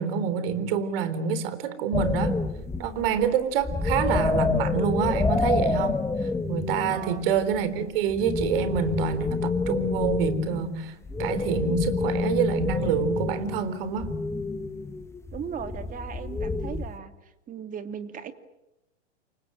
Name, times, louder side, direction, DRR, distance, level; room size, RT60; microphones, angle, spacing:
voice 1, 0.0-2.4 2.8-6.0 6.5-10.9 11.2-14.1, right 7 dB, 55° right, 13 dB, 3.9 m, -27 dB
sound 1, 1.9-3.3 3.6-10.8 11.0-17.0, left 3 dB, 10° left, 1.5 m, -28 dB
voice 2, 6.9-7.3 15.3-18.3, right 7 dB, 25° right, 8 dB, 2.7 m, -38 dB
29.0 x 25.0 x 7.7 m, 0.92 s
hypercardioid pair, 110°, 34 cm